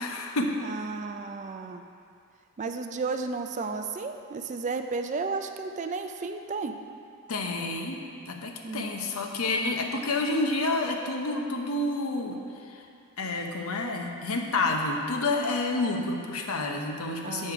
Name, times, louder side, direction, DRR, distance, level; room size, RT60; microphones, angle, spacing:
voice 1, 0.0-0.6 7.3-8.0 8.3-12.9 13.2-17.5, left 2 dB, 75° left, 2 dB, 0.8 m, -29 dB
voice 2, 0.6-1.8 2.6-6.8 8.6-8.9 17.2-17.5, right 4 dB, 35° right, 6 dB, 0.4 m, -33 dB
8.3 x 5.4 x 4.7 m, 2.4 s
head